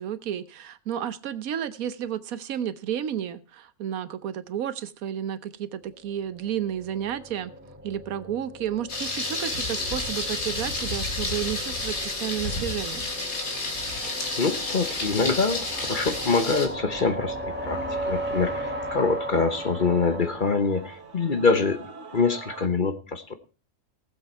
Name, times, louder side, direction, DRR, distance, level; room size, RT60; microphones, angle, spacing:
voice 1, 0.0-7.5 7.8-13.1, right 10 dB, 85° right, 14 dB, 1.3 m, -32 dB
sound 1, 6.1-21.3, right 1 dB, 10° right, 1.6 m, -37 dB
Thunder, 8.9-16.7, left 2 dB, 85° left, 2.7 m, -30 dB
Male singing / Female singing / Musical instrument, 13.2-22.7, right 6 dB, 60° right, 1.7 m, -47 dB
voice 2, 14.0-23.3, left 4 dB, 40° left, 9 dB, 1.1 m, -25 dB
19.0 x 7.7 x 4.4 m, 0.34 s
omnidirectional pair, 1.4 m